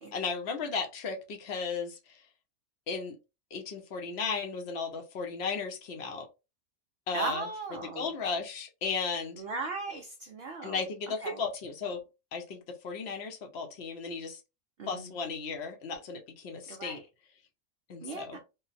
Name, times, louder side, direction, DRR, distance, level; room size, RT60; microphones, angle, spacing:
voice 1, 0.1-2.2 2.9-3.2 3.5-6.3 7.1-7.5 7.8-9.4 10.6-12.0 12.3-14.4 14.9-17.0 17.9-18.4, left 5 dB, 55° left, 4 dB, 0.8 m, -35 dB
voice 2, 7.1-8.1 9.4-10.8 11.2-11.4 14.8-15.1 16.6-17.0 18.0-18.4, right 4 dB, 70° right, 3 dB, 0.6 m, -37 dB
3.7 x 2.1 x 2.5 m, 0.27 s
omnidirectional pair, 1.5 m